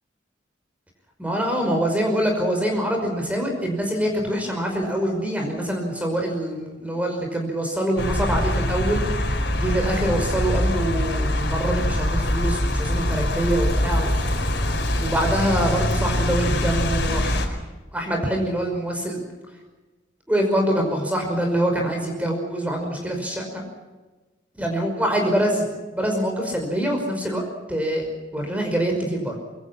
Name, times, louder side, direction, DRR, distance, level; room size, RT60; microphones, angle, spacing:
voice 1, 1.2-14.1 15.0-17.5 17.9-19.2 20.3-23.6 24.6-25.7 25.9-27.4 27.7-29.4, right 1 dB, 10° right, 2 dB, 5.4 m, -25 dB
sound 1, 8.0-17.5, left 1 dB, 60° left, 4.8 m, -23 dB
26.0 x 24.5 x 6.0 m, 1.2 s
head